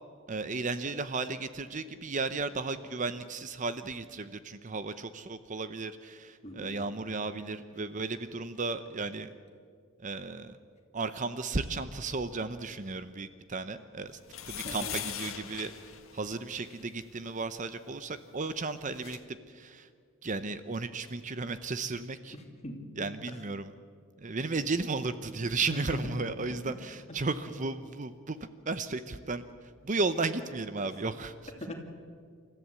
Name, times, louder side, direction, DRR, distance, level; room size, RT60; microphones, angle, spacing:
voice 1, 0.3-9.3 10.0-10.6 10.9-14.2 14.4-15.7 16.1-19.9 20.2-22.4 22.9-23.7 24.2-28.4 28.7-31.5, right 3 dB, 35° right, 12 dB, 0.7 m, -34 dB
voice 2, 6.4-6.9 14.6-14.9 22.3-23.1 25.7-26.0 31.6-31.7, equal, 30° left, 3 dB, 2.6 m, -41 dB
sound 1, 14.2-16.8 18.5-18.6 18.8-19.2, left 10 dB, 75° left, 1.6 m, -40 dB
28.5 x 14.0 x 8.4 m, 2.1 s
head